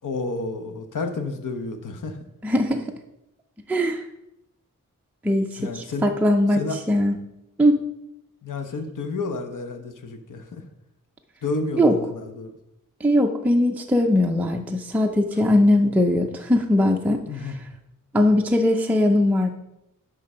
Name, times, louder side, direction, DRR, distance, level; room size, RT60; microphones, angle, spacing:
voice 1, 0.0-2.2 5.6-6.1 6.5-6.8 8.4-10.6 11.4-12.6 17.3-17.6, left 3 dB, 70° left, 7 dB, 1.0 m, -30 dB
voice 2, 2.4-2.8 3.7-4.0 5.2-6.6 6.9-7.2 7.6-7.8 11.8-12.0 13.0-17.2 18.1-19.5, left 1 dB, 5° right, 3 dB, 0.5 m, -20 dB
11.0 x 3.8 x 5.6 m, 0.86 s
wide cardioid pair, 175°, 33 cm